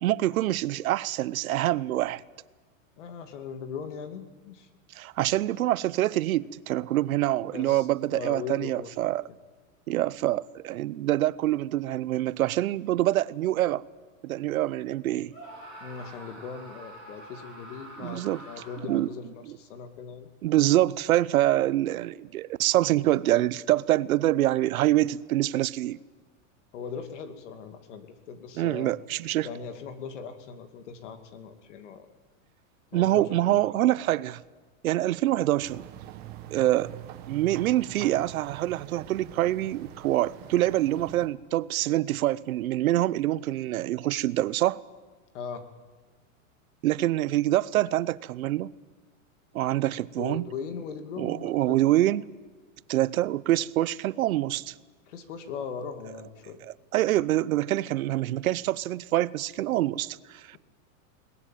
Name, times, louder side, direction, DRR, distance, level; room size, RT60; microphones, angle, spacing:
voice 1, 0.0-2.2 5.0-9.2 9.9-13.8 14.2-15.3 18.0-18.4 18.9-19.1 19.5-19.6 20.4-26.0 28.6-29.5 32.9-34.4 34.8-35.8 36.5-36.9 37.3-44.8 46.8-48.7 49.5-50.5 51.2-52.3 52.9-54.7 56.9-60.6, right 14 dB, 85° right, 0.8 m, -25 dB
voice 2, 3.0-4.7 7.5-8.9 9.3-9.4 15.8-20.3 26.7-28.9 29.4-32.1 32.9-33.7 45.3-45.7 50.2-51.9 55.1-56.6, left 6 dB, 60° left, 2.6 m, -39 dB
Screaming, 15.3-19.1, right 1 dB, 10° left, 7.1 m, -46 dB
sound 1, 35.6-41.3, right 12 dB, 25° right, 1.2 m, -44 dB
21.5 x 19.5 x 9.2 m
supercardioid pair, 180°, 41 cm